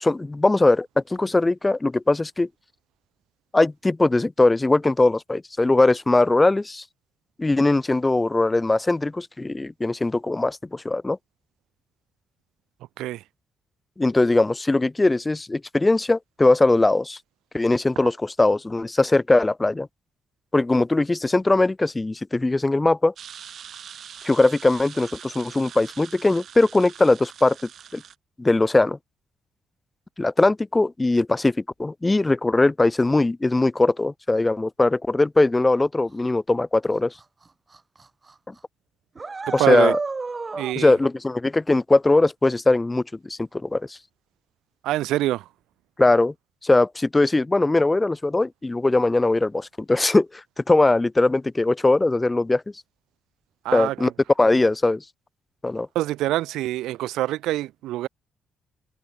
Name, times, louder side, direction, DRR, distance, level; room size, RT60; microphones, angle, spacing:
voice 1, 0.0-2.5 3.5-6.8 7.4-11.2 14.0-17.2 17.5-19.9 20.5-23.1 24.2-27.6 27.9-28.0 28.4-29.0 30.2-37.1 38.5-38.6 39.5-40.0 40.8-44.0 46.0-46.3 46.6-52.6 53.7-54.1 54.4-55.0 55.6-55.9, left 2 dB, 15° left, 0.5 m, -20 dB
sound 1, 23.2-28.1, right 8 dB, 60° right, 1.4 m, -43 dB
sound 2, 37.2-37.3 37.7-38.0 38.3-38.4 39.1-40.7, right 3 dB, 25° right, 0.7 m, -30 dB
voice 2, 39.5-39.9 40.6-40.9 44.8-45.5 53.6-54.1 55.9-58.1, right 15 dB, 90° right, 0.6 m, -25 dB
cardioid pair, 90°, 0 cm